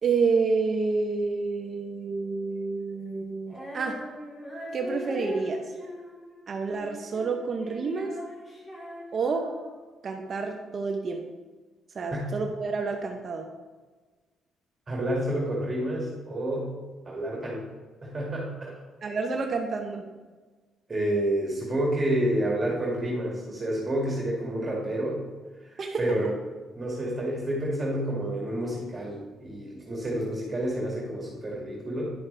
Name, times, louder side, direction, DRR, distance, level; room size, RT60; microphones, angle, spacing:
voice 1, 0.0-4.2 4.7-5.6 6.5-8.2 9.1-9.7 10.0-11.3 11.9-13.5 19.0-20.1 25.8-26.0, right 4 dB, 50° right, 3 dB, 0.8 m, -29 dB
Female singing, 3.5-9.9, left 1 dB, 30° left, 2.7 m, -41 dB
voice 2, 14.9-16.7 17.1-17.6 18.0-18.8 20.9-25.2 25.7-26.3 26.7-32.1, right 1 dB, 30° right, -3 dB, 2.2 m, -29 dB
10.0 x 5.9 x 3.4 m, 1.3 s
cardioid pair, 90°, 0 cm